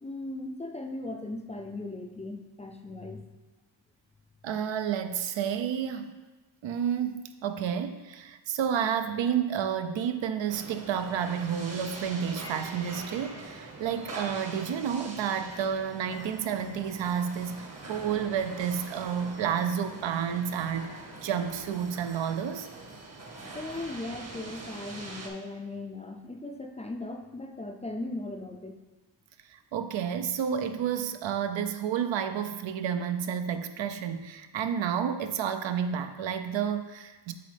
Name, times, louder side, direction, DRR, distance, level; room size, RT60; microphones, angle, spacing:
voice 1, 0.0-3.2 23.5-28.8, left 2 dB, 15° left, 3 dB, 0.4 m, -38 dB
voice 2, 4.4-6.2 6.6-22.7 29.5-37.3, right 8 dB, 80° right, 9 dB, 0.6 m, -30 dB
sound 1, 10.5-25.3, right 2 dB, 35° right, 0.9 m, -43 dB
7.7 x 4.1 x 3.3 m, 1.2 s
wide cardioid pair, 105°, 45 cm